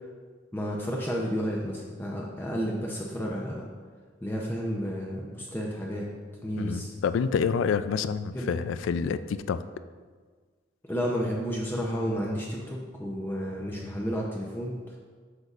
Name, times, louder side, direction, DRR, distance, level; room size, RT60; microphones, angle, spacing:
voice 1, 0.5-3.7 4.2-6.1 6.4-6.9 8.3-8.5 10.9-14.8, equal, 10° left, -2 dB, 0.6 m, -31 dB
voice 2, 6.6-9.6, left 6 dB, 90° left, 13 dB, 0.3 m, -28 dB
8.0 x 6.6 x 2.4 m, 1.5 s
head